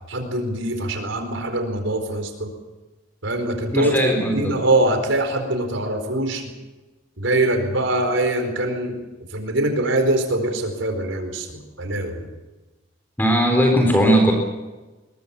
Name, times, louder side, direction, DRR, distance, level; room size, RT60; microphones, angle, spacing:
voice 1, 0.1-2.5 3.2-6.5 7.2-9.0 9.3-12.3, right 1 dB, 75° right, 5 dB, 4.5 m, -23 dB
voice 2, 3.7-4.5 13.2-14.3, equal, 10° left, 2 dB, 3.9 m, -18 dB
22.5 x 22.0 x 7.1 m, 1.1 s
head